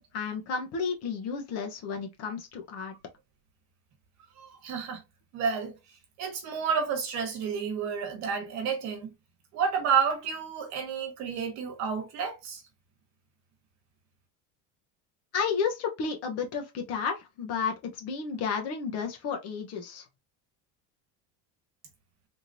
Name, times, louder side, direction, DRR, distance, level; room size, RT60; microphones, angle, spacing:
voice 1, 0.1-2.9 15.3-20.0, left 6 dB, 45° left, 1.0 m, -32 dB
voice 2, 4.4-5.0 5.3-5.8 6.2-9.1 9.5-12.6, right 6 dB, 50° right, 1.4 m, -30 dB
3.6 x 3.0 x 2.6 m
cardioid pair, 170°, 34 cm